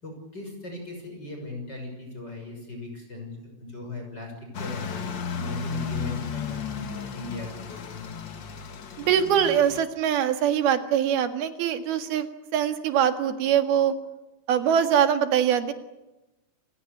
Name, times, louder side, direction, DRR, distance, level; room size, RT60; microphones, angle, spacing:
voice 1, 0.0-8.1, left 2 dB, 25° left, 2 dB, 6.8 m, -38 dB
sound 1, 4.5-9.8, left 6 dB, 50° left, 1.4 m, -34 dB
voice 2, 9.0-12.3 12.5-14.0 14.5-15.7, right 9 dB, 90° right, 9 dB, 3.7 m, -23 dB
29.5 x 17.0 x 10.0 m, 0.99 s
omnidirectional pair, 4.3 m